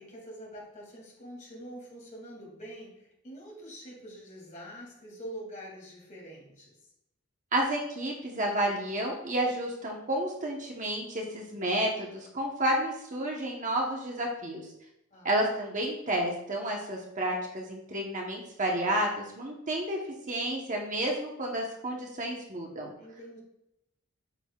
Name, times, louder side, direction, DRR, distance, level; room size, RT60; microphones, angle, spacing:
voice 1, 0.0-6.8 15.1-15.3 23.0-23.4, equal, 35° left, -2 dB, 2.3 m, -45 dB
voice 2, 7.5-14.7 15.2-20.0 20.3-22.9, right 1 dB, 35° right, 0 dB, 1.0 m, -31 dB
9.0 x 6.3 x 2.4 m, 0.82 s
head